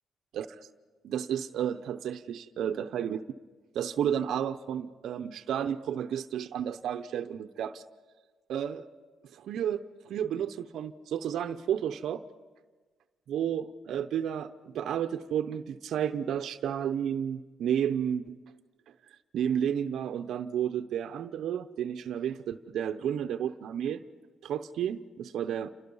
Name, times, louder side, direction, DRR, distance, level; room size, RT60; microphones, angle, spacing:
voice 1, 1.0-3.2 3.7-7.8 8.5-8.9 9.3-12.2 13.3-18.4 19.3-24.0 24.4-25.7, right 9 dB, 75° right, 9 dB, 0.8 m, -32 dB
28.5 x 26.5 x 5.5 m, 1.4 s
cardioid pair, 90°, 0 cm